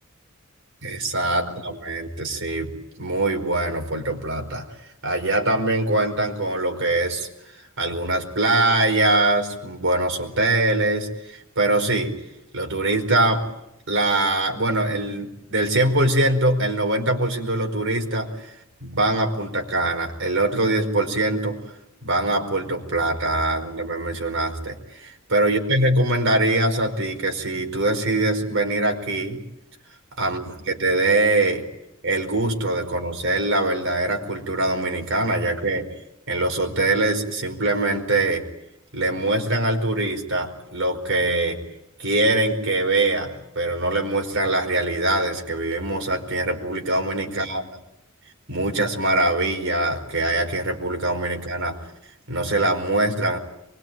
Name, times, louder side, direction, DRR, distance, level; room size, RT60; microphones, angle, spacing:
voice 1, 0.8-2.7 3.0-4.7 5.0-7.3 7.8-12.1 12.5-13.4 13.9-18.3 18.8-21.6 22.0-29.4 30.2-31.6 32.0-35.9 36.3-38.4 38.9-41.6 42.0-47.7 48.5-51.8 52.3-53.4, right 2 dB, 65° right, 4 dB, 4.8 m, -23 dB
24.0 x 22.0 x 9.1 m, 0.83 s
head